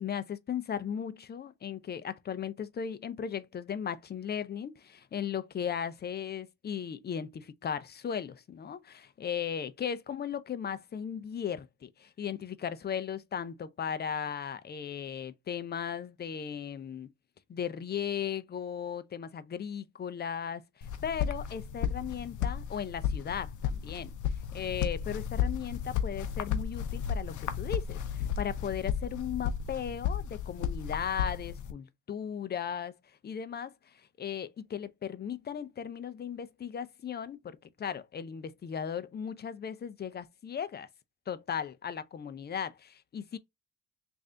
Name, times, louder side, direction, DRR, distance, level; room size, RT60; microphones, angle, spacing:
voice 1, 0.0-17.1 17.5-24.1 24.5-32.9 33.2-40.9 41.3-43.4, left 8 dB, 35° left, 0.5 m, -37 dB
sound 1, 20.8-31.7, left 8 dB, 80° left, 0.7 m, -34 dB
3.3 x 2.6 x 3.6 m
cardioid pair, 90°, 30 cm